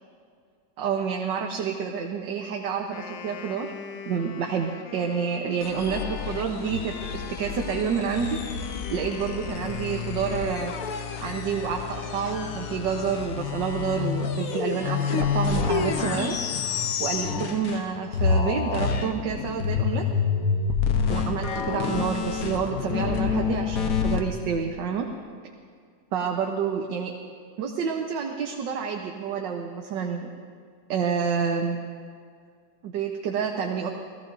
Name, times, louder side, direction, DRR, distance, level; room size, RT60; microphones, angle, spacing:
voice 1, 0.8-3.7 4.1-8.6 8.9-10.8 11.2-16.3 17.0-20.0 21.1-25.1 26.1-27.1 27.6-30.3 30.9-31.8 32.8-33.9, right 6 dB, 75° right, 2 dB, 1.6 m, -28 dB
Wind instrument woodwind instrument, 2.8-10.8, left 7 dB, 85° left, 1.6 m, -43 dB
sound 1, 5.6-17.9 18.1-24.2, left 6 dB, 55° left, 1.2 m, -28 dB
30.0 x 18.0 x 2.6 m, 2.1 s
omnidirectional pair, 2.0 m